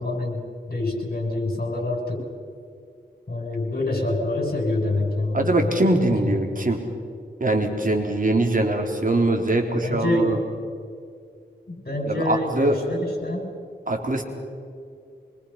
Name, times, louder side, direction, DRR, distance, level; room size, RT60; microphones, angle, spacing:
voice 1, 0.0-2.2 3.3-6.4 9.7-10.4 11.7-13.4, left 2 dB, 55° left, 1 dB, 7.0 m, -26 dB
voice 2, 5.3-6.8 7.4-10.4 12.1-12.8 13.9-14.2, right 2 dB, 45° right, 3 dB, 3.8 m, -22 dB
25.0 x 24.0 x 5.8 m, 2.4 s
cardioid pair, 50°, 19 cm